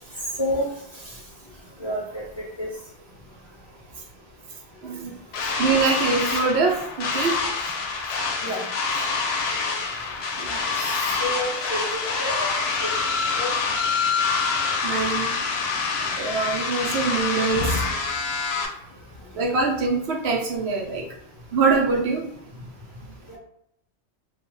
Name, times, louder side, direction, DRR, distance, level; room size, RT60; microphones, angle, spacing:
voice 1, 1.8-2.2 2.6-2.7 8.4-8.6 10.8-12.9 13.4-13.5 17.5-17.9 23.3-23.4, left 1 dB, 35° left, -6 dB, 0.4 m, -29 dB
voice 2, 4.8-5.1 5.6-7.3 10.4-10.6 14.8-15.3 16.2-17.8 19.3-21.0 21.5-22.2, right 4 dB, 65° right, 0 dB, 0.9 m, -23 dB
sound 1, 5.3-18.7, left 4 dB, 65° left, 0.8 m, -26 dB
2.4 x 2.2 x 3.0 m, 0.73 s
omnidirectional pair, 1.2 m